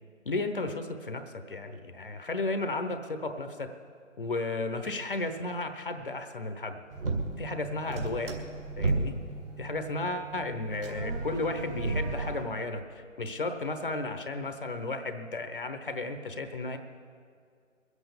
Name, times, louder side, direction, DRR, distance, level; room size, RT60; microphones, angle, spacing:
voice 1, 0.3-1.2 1.5-3.7 4.2-6.8 7.4-8.5 8.8-9.1 9.6-16.8, left 2 dB, 45° left, 7 dB, 1.0 m, -34 dB
sound 1, 6.9-12.4, right 3 dB, 45° right, 2.2 m, -34 dB
21.5 x 8.3 x 7.1 m, 2.2 s
figure-of-eight pair, 150°, 39 cm